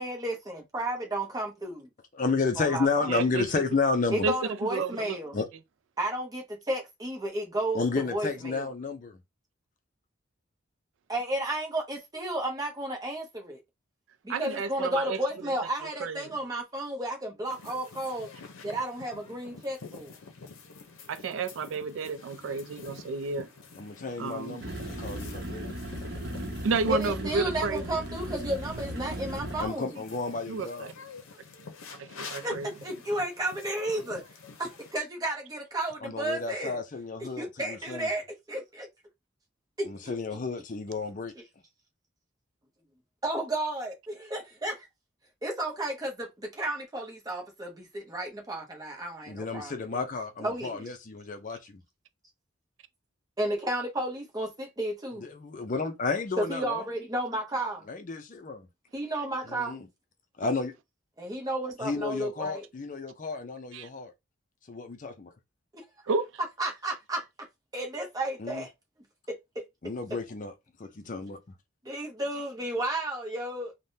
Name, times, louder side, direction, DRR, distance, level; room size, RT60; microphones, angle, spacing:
voice 1, 0.0-1.9 2.6-3.1 4.1-5.4 6.0-7.8 8.1-8.7 11.1-13.6 14.2-18.3 18.6-20.1 26.9-30.0 32.4-34.2 34.6-36.8 37.2-38.9 39.8-40.1 43.2-44.9 45.4-50.0 50.4-50.8 53.4-55.3 56.4-57.8 58.9-59.8 61.2-62.6 65.7-65.8 66.6-67.2 67.7-68.7 69.3-69.4 71.8-73.7, right 1 dB, 20° right, 0.7 m, -33 dB
voice 2, 2.1-4.3 5.3-5.5 7.7-9.2 23.8-25.6 29.6-30.9 36.0-38.1 39.9-41.3 49.3-51.8 55.2-56.8 57.9-58.7 59.5-59.9 60.4-60.7 61.8-64.1 64.7-65.3 68.4-68.6 69.8-70.5 70.8-71.4, left 4 dB, 40° left, 0.4 m, -32 dB
voice 3, 3.1-3.5 4.2-4.4 4.6-5.2 14.3-15.5 15.8-16.4 21.1-23.5 24.2-24.6 26.6-27.8 30.5-30.9 32.0-32.7 63.7-63.9 66.1-66.3, right 4 dB, 75° right, 0.4 m, -31 dB
sound 1, 17.5-34.9, left 4 dB, 85° left, 0.6 m, -47 dB
sound 2, 24.6-29.7, right 1 dB, 50° right, 0.8 m, -37 dB
3.4 x 2.1 x 2.6 m
head